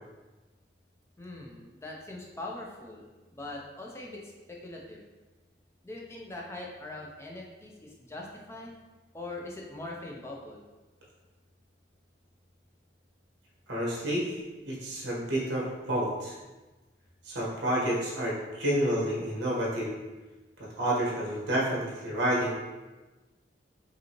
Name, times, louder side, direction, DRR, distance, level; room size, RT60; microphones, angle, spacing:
voice 1, 1.2-5.1 5.8-8.7 9.1-10.7, left 2 dB, 15° left, -2 dB, 0.6 m, -42 dB
voice 2, 13.7-14.4 14.6-16.3 17.2-19.9 20.8-22.5, right 1 dB, 70° right, -5 dB, 1.4 m, -29 dB
5.1 x 2.7 x 3.0 m, 1.2 s
head